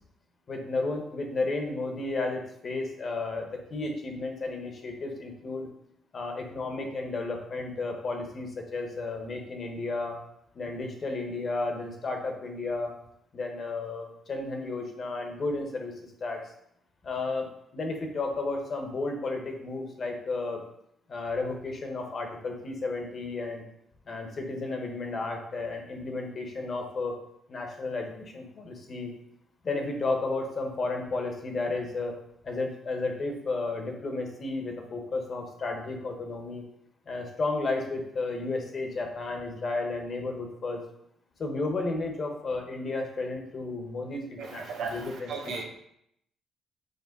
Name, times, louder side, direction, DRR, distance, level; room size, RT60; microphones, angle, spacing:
voice 1, 0.5-5.7 6.1-10.2 10.5-12.9 13.3-16.5 17.0-17.5 17.7-20.6 21.1-23.6 24.1-27.2 27.5-29.1 29.6-32.2 32.4-36.6 37.1-40.8 41.4-45.6, left 3 dB, 45° left, 3 dB, 1.2 m, -33 dB
voice 2, 44.4-45.6, right 4 dB, 80° right, 2 dB, 1.1 m, -36 dB
5.4 x 4.4 x 3.9 m, 0.73 s
cardioid pair, 90°, 0 cm